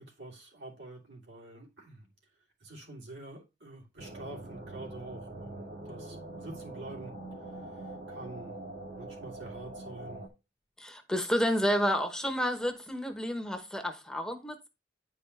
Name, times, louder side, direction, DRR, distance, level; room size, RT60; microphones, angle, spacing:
voice 1, 0.0-2.0 2.6-7.1 7.6-8.5 8.9-10.2, right 2 dB, 80° right, 2.9 m, -47 dB
sound 1, 4.0-10.3, right 2 dB, 60° right, 1.5 m, -44 dB
voice 2, 10.8-14.7, equal, 5° left, 1.0 m, -30 dB
9.8 x 4.8 x 3.2 m
head